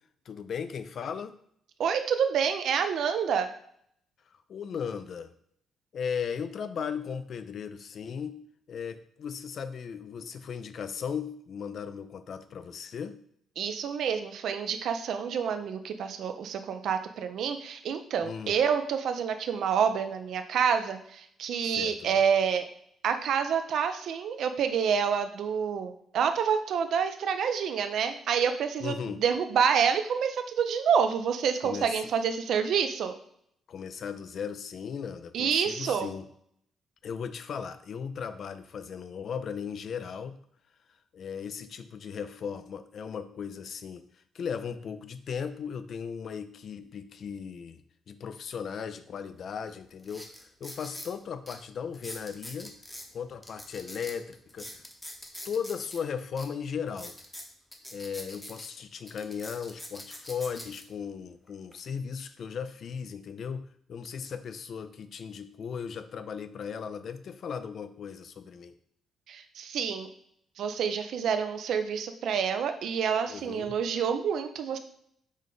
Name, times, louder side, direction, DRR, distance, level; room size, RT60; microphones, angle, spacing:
voice 1, 0.3-1.3 4.5-5.3 5.9-8.4 8.7-13.2 18.2-18.6 21.7-22.2 28.8-29.2 31.6-32.1 33.7-36.3 37.0-40.4 41.1-44.1 44.3-47.8 48.1-52.7 53.1-54.8 55.4-57.2 57.9-68.7 73.3-73.7, left 7 dB, 60° left, 11 dB, 0.4 m, -37 dB
voice 2, 1.8-3.5 13.6-22.7 23.0-33.1 35.3-36.1 69.3-70.1 70.6-74.8, right 7 dB, 70° right, 8 dB, 0.4 m, -28 dB
sound 1, 49.4-49.5 50.0-51.1 51.5-51.6 51.9-53.1 53.4-56.0 56.4-56.5 56.9-58.7 59.1-60.8 61.5-61.7, left 1 dB, 10° left, 0.8 m, -43 dB
5.2 x 2.2 x 3.8 m, 0.67 s
cardioid pair, 90°, 0 cm